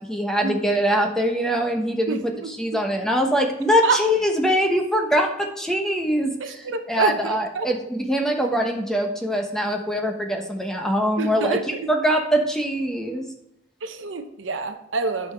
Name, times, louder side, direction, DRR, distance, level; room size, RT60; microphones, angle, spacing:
voice 1, 0.1-13.3, equal, 5° left, 2 dB, 1.0 m, -23 dB
voice 2, 6.4-7.7 11.2-11.9 13.8-15.3, right 4 dB, 70° right, 8 dB, 0.8 m, -26 dB
8.8 x 5.7 x 3.4 m, 0.83 s
head